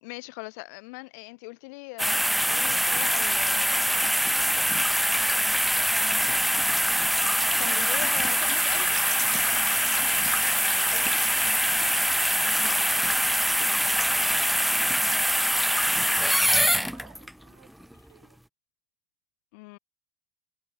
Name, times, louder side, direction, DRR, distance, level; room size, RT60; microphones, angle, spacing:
voice 1, 0.0-3.9 5.3-5.4 7.6-9.1 10.9-11.0 12.6-12.8 13.6-14.0 19.5-19.8, left 29 dB, 65° left, 1.1 m, -40 dB
sound 1, 2.0-17.3 17.8-17.9, equal, ahead, 0.6 m, -24 dB
voice 2, 4.5-5.6 9.3-9.7 10.1-11.4 12.1-12.5 14.1-18.4, right 17 dB, 75° right, 7.6 m, -57 dB
sound 2, 11.3-15.1 16.0-17.0 17.9-18.1, left 7 dB, 30° left, 2.2 m, -52 dB
hypercardioid pair, 90°, 10 cm